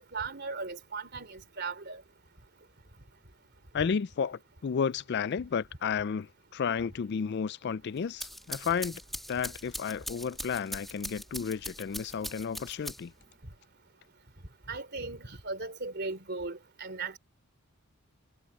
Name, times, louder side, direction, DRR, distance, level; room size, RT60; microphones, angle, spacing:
voice 1, 0.0-2.0 14.7-17.2, right 4 dB, 50° right, 3.3 m, -37 dB
voice 2, 3.7-9.0 9.3-13.1, left 6 dB, 50° left, 0.3 m, -32 dB
sound 1, 8.0-13.3, equal, ahead, 2.1 m, -41 dB
head